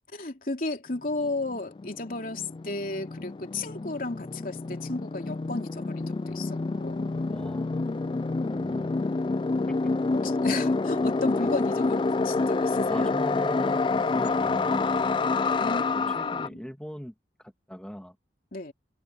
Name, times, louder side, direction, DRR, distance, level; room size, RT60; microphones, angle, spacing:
voice 1, 0.1-7.1 10.1-13.1 15.5-16.6 18.5-18.7, left 2 dB, 50° left, 3.1 m, -34 dB
sound 1, 1.0-1.1 1.2-16.5, left 3 dB, 30° left, 0.3 m, -28 dB
voice 2, 7.3-7.7 8.5-8.9 10.9-11.1 11.4-11.6 12.9-15.1 16.1-17.1 17.4-18.2, equal, 5° left, 2.0 m, -38 dB
head